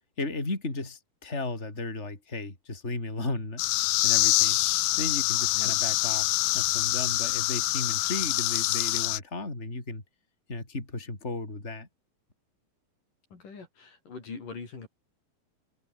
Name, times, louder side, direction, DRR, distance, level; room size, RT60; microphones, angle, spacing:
voice 1, 0.2-3.6 4.0-4.6 5.0-10.0 10.5-11.9, left 2 dB, 15° left, 5.3 m, -35 dB
sound 1, 3.6-9.2, left 19 dB, 80° left, 2.5 m, -25 dB
voice 2, 13.3-14.9, left 4 dB, 60° left, 6.6 m, -42 dB
omnidirectional pair, 4.3 m